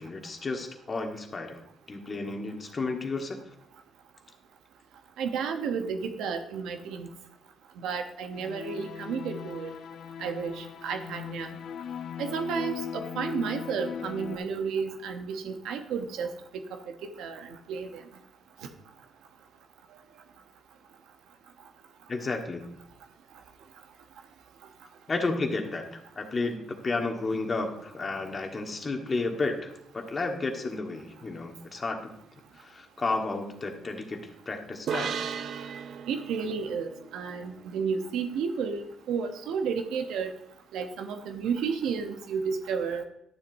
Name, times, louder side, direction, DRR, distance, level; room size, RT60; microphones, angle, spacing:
voice 1, 0.0-1.6 1.9-3.4 22.1-22.7 25.1-32.1 32.5-35.2, left 3 dB, 35° left, 3 dB, 1.5 m, -32 dB
voice 2, 5.2-7.1 7.8-9.7 10.2-11.5 12.2-16.3 16.7-16.8 17.2-18.0 36.1-38.8 39.1-40.4 40.7-43.0, right 6 dB, 85° right, 6 dB, 0.9 m, -32 dB
sound 1, 8.3-14.4, left 8 dB, 65° left, 0.4 m, -39 dB
sound 2, 34.9-38.3, right 7 dB, 65° right, 0.5 m, -37 dB
11.5 x 7.4 x 2.7 m, 0.78 s
cardioid pair, 75°, 0 cm